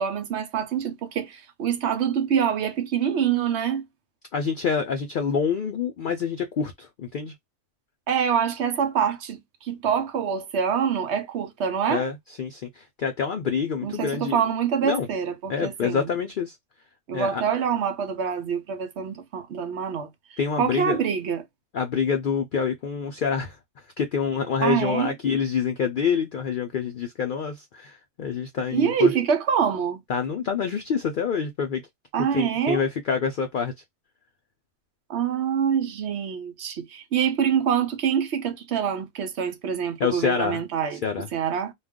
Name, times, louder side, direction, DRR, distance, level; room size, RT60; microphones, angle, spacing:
voice 1, 0.0-3.9 8.1-12.0 13.8-16.1 17.1-20.1 20.6-21.4 24.6-25.1 28.7-30.0 32.1-32.8 35.1-41.0 41.3-41.7, right 7 dB, 65° right, 0.8 m, -25 dB
voice 2, 4.3-7.3 11.9-14.4 14.8-15.1 15.5-16.6 17.1-17.4 20.4-21.0 21.7-23.6 24.0-29.1 30.1-31.8 32.3-33.7 40.0-40.6 41.0-41.3, left 6 dB, 70° left, 0.4 m, -27 dB
2.4 x 2.3 x 3.5 m
omnidirectional pair, 1.4 m